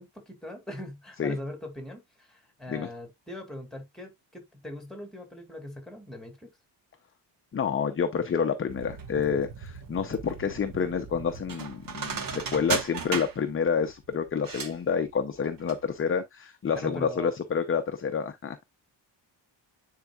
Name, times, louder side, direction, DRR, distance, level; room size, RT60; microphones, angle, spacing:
voice 1, 0.0-6.5 16.8-17.4, left 1 dB, ahead, 2.4 m, -40 dB
voice 2, 7.5-18.6, left 6 dB, 25° left, 0.7 m, -28 dB
sound 1, 8.7-15.8 16.1-16.2, right 6 dB, 45° right, 1.5 m, -36 dB
9.9 x 4.7 x 2.4 m
cardioid pair, 155°, 48 cm